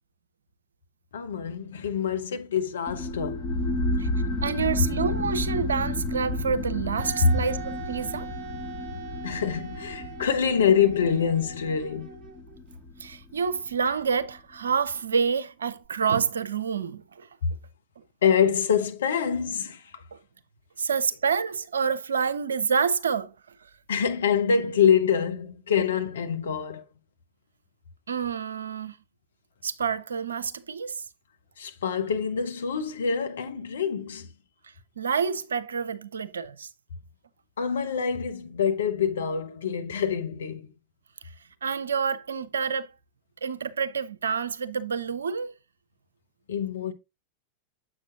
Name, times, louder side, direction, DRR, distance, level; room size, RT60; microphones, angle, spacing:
voice 1, 1.1-3.5 9.2-12.2 17.4-17.5 18.2-20.0 23.9-26.8 31.6-34.3 37.6-40.7 46.5-46.9, left 7 dB, 65° left, 0.8 m, -25 dB
sound 1, 2.9-14.0, left 2 dB, 20° left, 1.4 m, -32 dB
voice 2, 4.4-8.3 13.0-17.3 20.1-20.2 20.8-23.3 28.1-29.0 29.6-31.0 35.0-36.7 41.6-42.9 43.4-45.5, right 6 dB, 70° right, 0.5 m, -28 dB
Wind instrument woodwind instrument, 7.0-12.6, right 6 dB, 35° right, 1.0 m, -41 dB
7.5 x 6.0 x 2.6 m
figure-of-eight pair, 90°, 0 cm